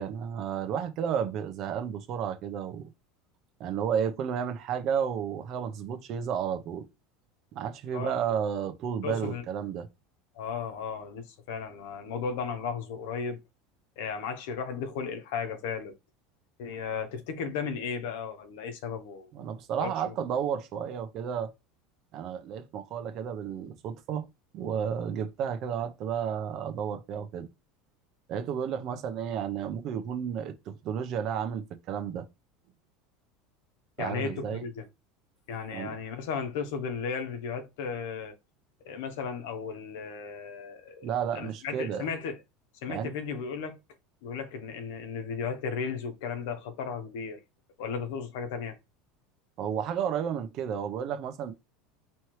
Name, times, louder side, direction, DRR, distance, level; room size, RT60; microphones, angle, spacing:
voice 1, 0.0-2.9 3.6-6.9 7.5-9.9 19.3-21.5 22.1-24.3 24.5-27.5 28.3-32.3 34.0-34.6 35.7-35.9 41.0-42.0 42.9-43.1 49.6-51.5, right 8 dB, 50° right, 0.7 m, -32 dB
voice 2, 9.0-9.4 10.3-13.4 14.0-15.9 16.6-19.3 19.7-20.1 34.0-34.8 35.5-38.3 38.8-42.4 42.8-43.8 44.2-47.4 47.8-48.8, left 6 dB, 75° left, 0.9 m, -35 dB
4.5 x 3.1 x 3.1 m
supercardioid pair, 135°, 0 cm